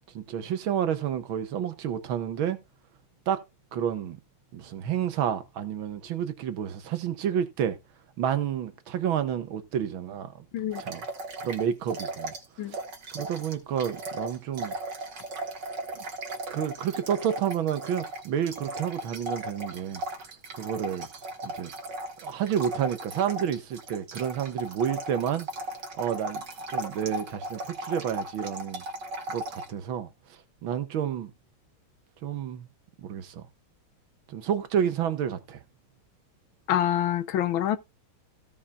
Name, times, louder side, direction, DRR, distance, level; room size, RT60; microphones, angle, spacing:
voice 1, 0.1-2.6 3.3-3.4 3.7-4.2 4.5-7.8 8.2-10.3 10.8-11.1 11.4-12.3 12.7-12.8 13.1-14.7 16.5-20.0 20.6-21.1 21.4-21.7 22.2-25.5 26.0-28.8 29.3-30.1 30.6-31.3 32.2-32.7 33.0-33.4 34.3-35.6, right 9 dB, 75° right, 2.0 m, -30 dB
sound 1, 10.7-12.5 12.7-29.7, right 2 dB, 55° right, 2.5 m, -37 dB
voice 2, 36.7-37.8, left 11 dB, 75° left, 1.6 m, -26 dB
16.5 x 5.6 x 2.3 m
omnidirectional pair, 2.3 m